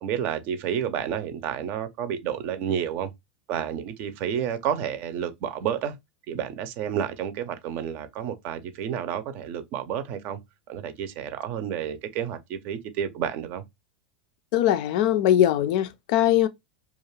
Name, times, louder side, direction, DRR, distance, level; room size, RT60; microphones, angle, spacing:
voice 1, 0.0-3.1 3.5-5.9 6.3-10.4 10.7-13.6, right 9 dB, 55° right, 0.6 m, -30 dB
voice 2, 14.5-16.5, left 12 dB, 65° left, 0.4 m, -21 dB
2.4 x 2.4 x 3.1 m
hypercardioid pair, 100°, 4 cm